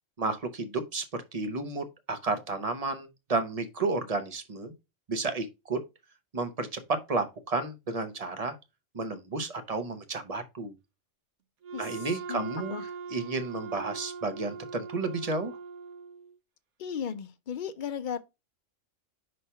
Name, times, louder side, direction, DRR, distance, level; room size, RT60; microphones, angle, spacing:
voice 1, 0.2-4.7 5.1-5.8 6.3-8.6 8.9-10.7 11.8-12.8 13.1-15.5, right 3 dB, 35° right, 0.8 m, -32 dB
Wind instrument woodwind instrument, 11.6-16.4, right 5 dB, 70° right, 1.1 m, -41 dB
voice 2, 12.3-12.9 16.8-18.2, left 7 dB, 50° left, 0.6 m, -36 dB
5.6 x 3.2 x 5.5 m
omnidirectional pair, 1.3 m